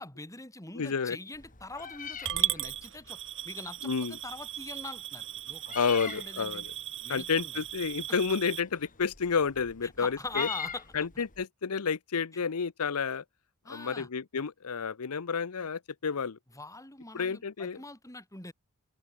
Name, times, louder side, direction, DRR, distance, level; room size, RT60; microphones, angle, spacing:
voice 1, 0.0-3.2 3.4-6.6 7.0-7.5 9.8-10.8 13.6-14.1 16.5-18.5, left 2 dB, 15° left, 4.2 m, -43 dB
voice 2, 0.7-1.2 3.8-4.2 5.7-6.7 7.1-10.5 10.9-13.2 13.7-16.4 17.1-17.8, left 5 dB, 80° left, 0.7 m, -30 dB
Meow, 1.3-11.4, left 7 dB, 35° left, 5.6 m, -45 dB
Coin (dropping) / Glass, 2.2-8.6, right 11 dB, 60° right, 1.5 m, -36 dB
head